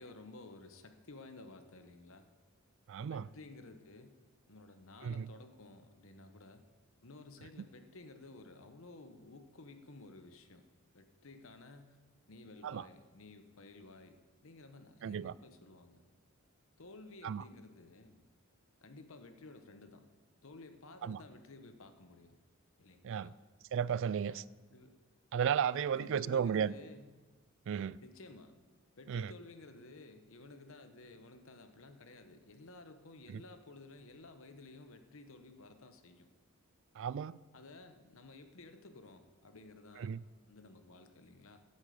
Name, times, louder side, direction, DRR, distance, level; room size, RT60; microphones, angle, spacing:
voice 1, 0.0-2.3 3.0-4.2 4.5-6.6 7.0-10.6 10.9-12.0 12.3-14.2 14.4-16.0 16.8-18.2 18.8-20.1 20.4-22.4 22.8-23.4 24.3-25.0 25.7-27.2 28.0-28.5 29.0-36.3 37.5-40.2 40.5-41.6, left 2 dB, 70° left, 1.1 m, -54 dB
voice 2, 2.9-3.3 5.0-5.3 12.6-12.8 15.0-15.3 17.2-17.4 21.0-21.2 23.0-23.3 23.7-24.4 25.3-26.7 27.7-28.0 29.1-29.3 33.3-33.4 37.0-37.4 40.0-40.2, right 7 dB, 65° right, 0.3 m, -34 dB
10.0 x 8.4 x 7.8 m
head